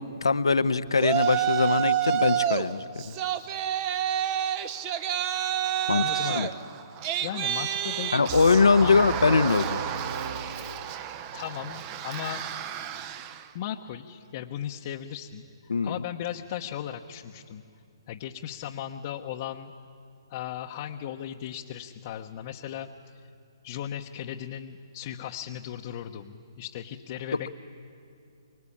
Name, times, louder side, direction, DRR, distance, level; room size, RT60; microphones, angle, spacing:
voice 1, 0.0-3.1 5.9-6.5 8.1-9.8 15.7-16.0, left 4 dB, 80° left, 12 dB, 1.0 m, -22 dB
Yell, 1.0-2.7 3.0-13.4, right 10 dB, 30° right, 1.0 m, -29 dB
voice 2, 6.0-6.5 7.2-8.1 8.8-9.0 11.3-12.4 13.5-17.6 18.1-19.7 20.3-22.9 23.6-27.5, left 10 dB, 40° left, 1 dB, 1.0 m, -36 dB
sound 1, 8.3-11.3, right 5 dB, 60° right, 4.5 m, -38 dB
24.5 x 23.5 x 8.7 m, 2.6 s
hypercardioid pair, 140°, 3 cm